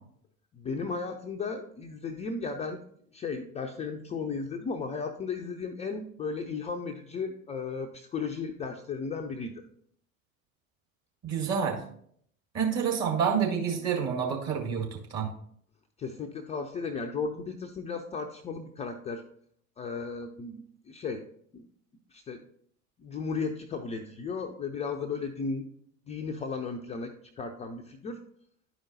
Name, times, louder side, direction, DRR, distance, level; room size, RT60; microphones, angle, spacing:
voice 1, 0.5-2.8 3.1-9.6 16.0-19.2 19.8-21.2 21.5-21.7 22.1-22.4 23.0-25.7 26.1-28.2, left 4 dB, 15° left, 4 dB, 0.4 m, -35 dB
voice 2, 11.2-11.8 12.5-15.3, right 7 dB, 40° right, 0 dB, 2.0 m, -28 dB
11.0 x 5.0 x 2.7 m, 0.64 s
figure-of-eight pair, 70°, 42 cm